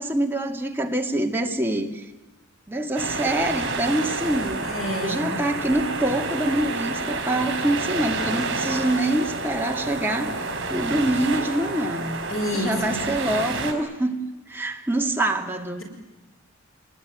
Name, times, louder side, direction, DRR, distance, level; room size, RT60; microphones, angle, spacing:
voice 1, 0.0-2.1 2.7-4.7 5.0-10.3 10.7-12.2 12.5-14.2 14.5-15.8, right 1 dB, 10° right, 2 dB, 2.0 m, -25 dB
sound 1, 3.0-13.7, right 3 dB, 60° right, 4.7 m, -29 dB
voice 2, 4.6-5.4 12.3-13.0, equal, 85° left, 2 dB, 5.9 m, -29 dB
27.5 x 20.5 x 9.3 m, 1.1 s
head